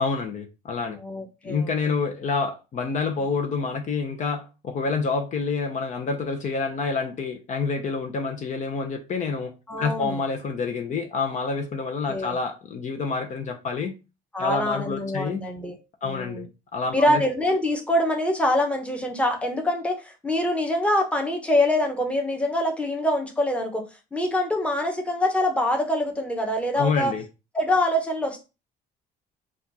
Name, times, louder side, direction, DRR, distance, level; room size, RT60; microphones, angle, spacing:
voice 1, 0.0-1.0 1.4-13.9 14.4-15.4 16.0-17.2 26.8-27.2, left 4 dB, 45° left, 0.8 m, -28 dB
voice 2, 1.0-1.7 9.7-10.2 12.1-12.4 14.3-15.8 16.0-16.4 16.9-27.1 27.5-28.4, left 1 dB, 5° left, 1.0 m, -25 dB
4.2 x 2.5 x 4.2 m
cardioid pair, 110°, 17 cm